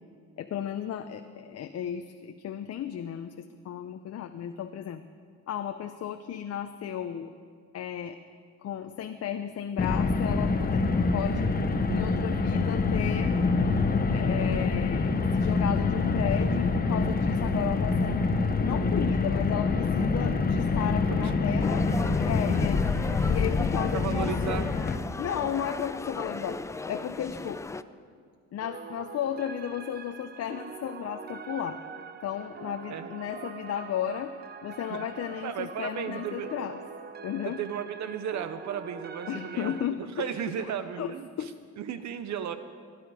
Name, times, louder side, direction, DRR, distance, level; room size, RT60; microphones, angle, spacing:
voice 1, 0.4-5.0 5.5-7.3 7.7-8.2 8.6-11.5 11.9-13.3 14.1-18.3 18.6-21.9 22.2-22.8 23.3-24.6 25.2-26.6 26.9-27.6 28.5-31.8 32.2-34.3 34.6-36.8 37.2-37.6 39.3-40.5 41.0-41.5, left 9 dB, 55° left, 8 dB, 0.6 m, -34 dB
Car, 9.8-25.0, left 4 dB, 30° left, 1.0 m, -26 dB
sound 1, 21.6-27.8, left 3 dB, 10° left, 0.3 m, -36 dB
voice 2, 23.9-24.7 32.9-33.1 34.9-35.0 35.4-36.5 37.4-42.6, right 8 dB, 65° right, 11 dB, 0.7 m, -35 dB
sound 2, 28.6-39.9, right 5 dB, 35° right, 0.8 m, -43 dB
17.0 x 11.0 x 4.9 m, 2.1 s
cardioid pair, 90°, 30 cm